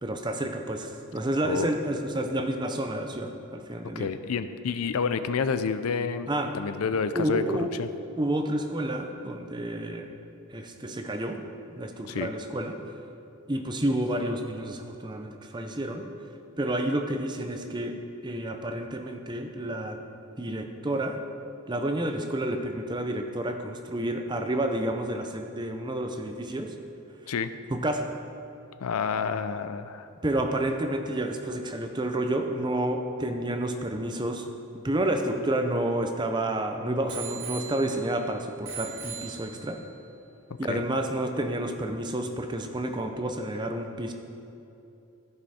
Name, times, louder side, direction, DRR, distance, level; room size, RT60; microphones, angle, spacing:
voice 1, 0.0-4.1 6.3-6.5 7.1-7.7 8.2-10.1 10.5-11.4 11.8-12.8 13.5-16.1 16.6-18.0 18.2-20.0 20.4-21.2 21.7-26.7 27.7-28.1 30.2-34.5 34.7-39.8 40.6-44.1, right 1 dB, 20° right, 5 dB, 0.6 m, -30 dB
voice 2, 4.0-6.3 6.5-7.9 12.1-12.3 27.3-27.5 28.8-30.1 40.6-40.8, left 5 dB, 80° left, 11 dB, 0.4 m, -29 dB
Bicycle bell, 34.8-36.4 37.1-38.2 38.6-39.9 40.6-40.7, right 7 dB, 65° right, 1.9 m, -41 dB
15.0 x 5.4 x 4.2 m, 2.8 s
head